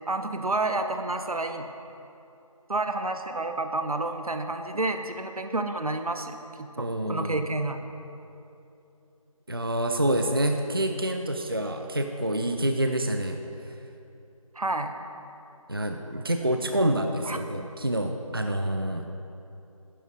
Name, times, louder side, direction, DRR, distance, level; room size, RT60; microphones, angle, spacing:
voice 1, 0.1-1.7 2.7-7.8 14.6-14.9 17.2-17.4, right 2 dB, 85° right, 7 dB, 0.8 m, -30 dB
voice 2, 6.8-7.4 9.5-13.4 15.7-19.1, right 1 dB, 40° right, 5 dB, 0.4 m, -27 dB
11.0 x 11.0 x 2.7 m, 2.8 s
figure-of-eight pair, 175°, 18 cm